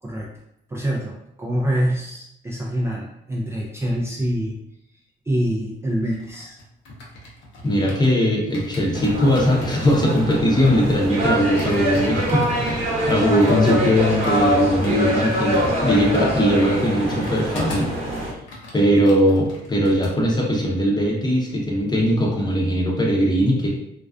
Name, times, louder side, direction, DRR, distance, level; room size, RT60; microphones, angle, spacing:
voice 1, 0.0-0.3 0.7-4.6 5.3-6.6, equal, 15° right, -3 dB, 0.3 m, -25 dB
sound 1, 5.9-8.2 8.5-18.0 18.3-20.1 20.4-20.7, left 1 dB, 70° left, 0.7 m, -39 dB
voice 2, 7.6-17.9 18.7-23.7, equal, 20° left, -2 dB, 0.7 m, -20 dB
sound 2, 8.9-18.3, right 1 dB, 30° right, 0.8 m, -24 dB
2.4 x 2.3 x 2.3 m, 0.79 s
cardioid pair, 90°, 20 cm